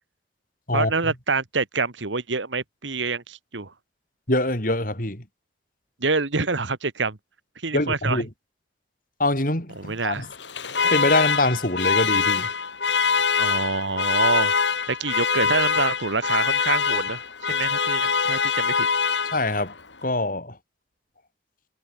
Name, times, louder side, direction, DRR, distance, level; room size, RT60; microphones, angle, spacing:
voice 1, 0.7-3.7 6.0-7.2 7.6-8.3 9.8-10.3 13.2-14.5 14.9-17.2 17.5-18.9, right 4 dB, 85° right, 1.8 m, -26 dB
voice 2, 4.3-5.2 7.7-8.3 9.2-10.3 10.8-12.5 19.3-19.7 20.0-20.6, left 2 dB, 50° left, 5.5 m, -24 dB
Alarm, 10.3-19.7, left 5 dB, 75° left, 3.2 m, -24 dB
head